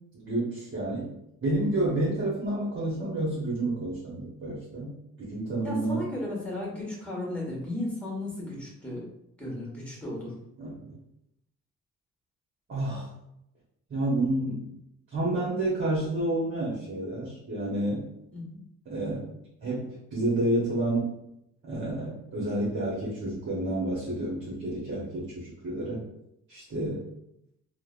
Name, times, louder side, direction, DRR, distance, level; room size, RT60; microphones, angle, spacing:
voice 1, 0.1-1.1 1.4-4.9 5.2-6.0 10.6-10.9 12.7-13.1 13.9-14.6 15.1-18.0 18.9-19.3 19.6-21.1 21.6-26.0 26.5-27.0, right 1 dB, 40° right, -7 dB, 1.0 m, -29 dB
voice 2, 5.6-9.0 9.4-10.3 18.3-18.5, left 1 dB, 5° left, -5 dB, 1.4 m, -35 dB
3.1 x 2.1 x 2.5 m, 0.80 s
cardioid pair, 90°, 30 cm